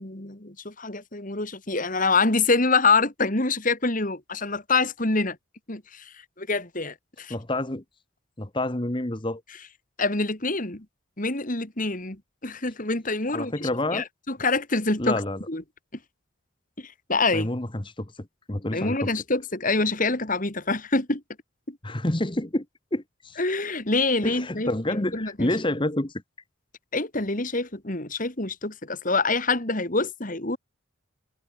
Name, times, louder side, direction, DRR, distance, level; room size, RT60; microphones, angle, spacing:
voice 1, 0.0-5.4 5.7-6.1 6.4-7.3 10.0-10.8 11.2-15.2 15.5-15.6 16.8-17.5 18.7-21.2 21.7-21.8 23.4-25.5 26.9-30.6, left 3 dB, 40° left, 2.6 m, -26 dB
voice 2, 7.3-7.8 8.4-9.4 13.3-14.1 15.0-15.4 17.3-19.1 21.8-22.6 22.9-23.4 24.2-26.1, left 1 dB, 25° left, 1.3 m, -28 dB
head